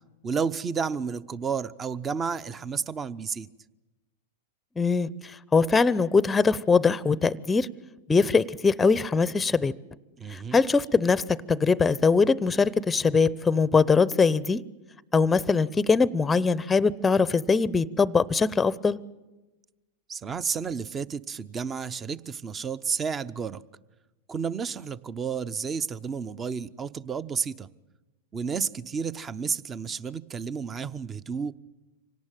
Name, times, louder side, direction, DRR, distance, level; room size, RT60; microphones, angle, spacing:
voice 1, 0.2-3.5 10.2-10.6 20.1-23.6 24.3-27.7 28.3-31.5, right 6 dB, 25° right, 0.8 m, -31 dB
voice 2, 4.8-7.7 8.1-9.7 10.3-14.6 15.1-19.0, left 4 dB, 15° left, 0.7 m, -22 dB
25.5 x 18.0 x 9.0 m
hypercardioid pair, 105°, 0 cm